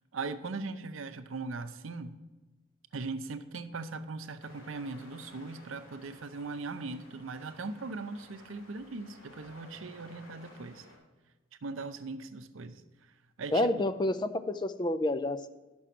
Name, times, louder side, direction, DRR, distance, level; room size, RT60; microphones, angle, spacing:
voice 1, 0.1-2.2 2.9-10.9 11.6-13.7, right 3 dB, 80° right, 0.7 m, -39 dB
sound 1, 4.4-11.0, left 1 dB, 90° left, 3.2 m, -55 dB
voice 2, 13.5-15.5, left 1 dB, 20° left, 0.4 m, -29 dB
11.0 x 6.1 x 5.9 m
head